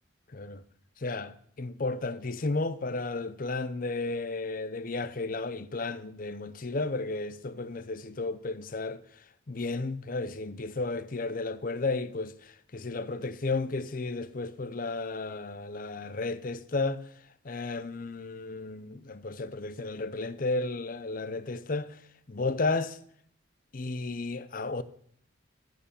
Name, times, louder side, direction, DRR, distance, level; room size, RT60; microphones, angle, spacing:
voice 1, 0.3-0.6 1.0-9.0 9.5-17.0 17.4-22.0 22.3-23.0 23.7-24.8, left 3 dB, 45° left, 0.6 m, -33 dB
14.5 x 6.7 x 7.0 m
head